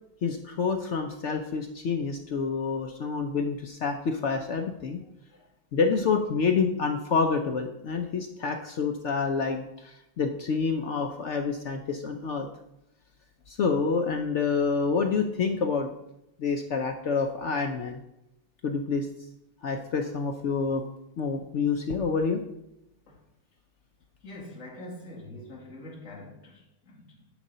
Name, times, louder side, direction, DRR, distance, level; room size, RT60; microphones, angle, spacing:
voice 1, 0.2-5.0 5.7-12.5 13.5-15.9 16.4-18.0 18.6-19.1 19.6-20.8 21.2-22.4, left 5 dB, 75° left, 4 dB, 0.6 m, -28 dB
voice 2, 24.2-27.3, left 1 dB, 45° left, -5 dB, 2.5 m, -44 dB
10.0 x 3.9 x 5.5 m, 0.86 s
omnidirectional pair, 1.9 m